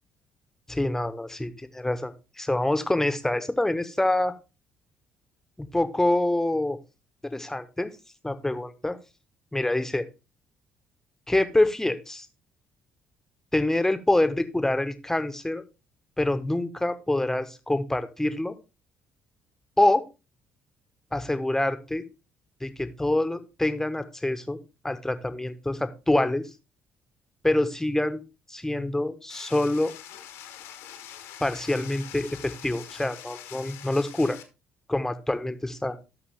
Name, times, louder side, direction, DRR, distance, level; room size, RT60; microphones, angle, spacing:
voice 1, 0.7-4.3 5.6-6.8 7.2-7.9 8.2-9.0 9.5-10.1 11.3-12.3 13.5-15.6 16.2-18.5 19.8-20.0 21.1-22.0 22.6-24.6 24.8-26.5 27.4-28.2 28.5-29.9 31.4-34.4 34.9-36.0, left 1 dB, 10° left, 11 dB, 1.3 m, -26 dB
sound 1, 29.3-34.4, left 10 dB, 70° left, 1.4 m, -44 dB
13.0 x 5.9 x 3.6 m, 0.28 s
figure-of-eight pair, 45°, 5 cm